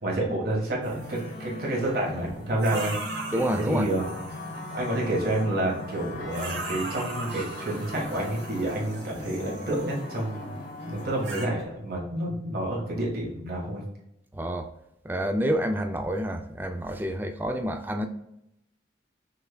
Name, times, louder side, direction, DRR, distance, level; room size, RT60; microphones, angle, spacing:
voice 1, 0.0-2.9 3.6-4.1 4.7-10.5 10.8-13.8, right 1 dB, 55° right, -3 dB, 1.5 m, -29 dB
sound 1, 0.8-1.4 2.6-5.5 6.3-10.2 11.0-11.4, right 3 dB, 75° right, 1.1 m, -39 dB
sound 2, 0.9-11.6, left 2 dB, 55° left, 1.0 m, -39 dB
voice 2, 3.3-3.9 14.3-14.7 15.0-18.1, equal, 10° right, 6 dB, 0.3 m, -28 dB
5.7 x 3.3 x 2.2 m, 0.81 s
head